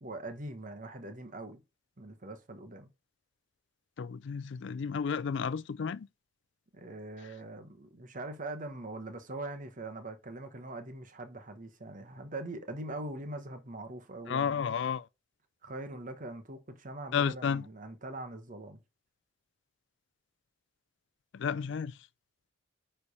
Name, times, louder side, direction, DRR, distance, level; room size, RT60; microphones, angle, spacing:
voice 1, 0.0-1.6 2.0-2.9 6.7-14.6 15.6-18.8, right 2 dB, 40° right, 1.0 m, -42 dB
voice 2, 4.0-6.1 7.2-7.3 14.3-15.1 17.1-17.7 21.3-22.1, left 6 dB, 60° left, 0.4 m, -32 dB
9.6 x 3.3 x 4.1 m
head